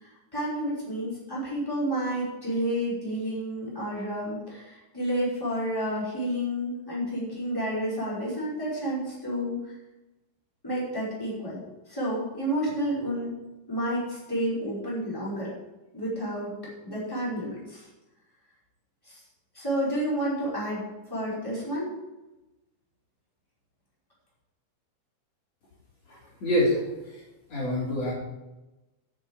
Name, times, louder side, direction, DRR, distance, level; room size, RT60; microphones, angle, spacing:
voice 1, 0.0-9.6 10.6-11.6 11.9-13.3 13.7-15.5 15.9-16.6 16.8-17.9 19.0-19.2 19.5-20.8 21.1-21.9, equal, 5° left, -7 dB, 5.2 m, -30 dB
voice 2, 26.1-26.8 27.5-28.1, left 1 dB, 55° left, -5 dB, 4.7 m, -26 dB
10.5 x 7.3 x 8.2 m, 1.0 s
omnidirectional pair, 3.5 m